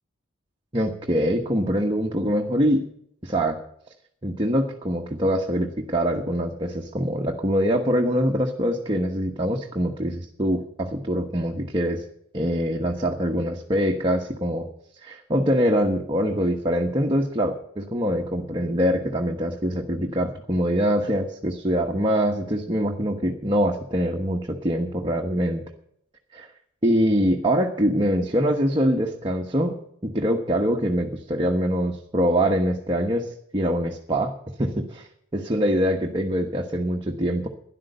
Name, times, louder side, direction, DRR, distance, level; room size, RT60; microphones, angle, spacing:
voice 1, 0.7-2.9 3.2-3.6 4.2-12.0 12.3-14.7 15.0-25.6 26.3-26.5 26.8-34.3 34.6-37.5, equal, 25° right, 1 dB, 1.1 m, -24 dB
12.5 x 11.0 x 6.6 m, 0.69 s
head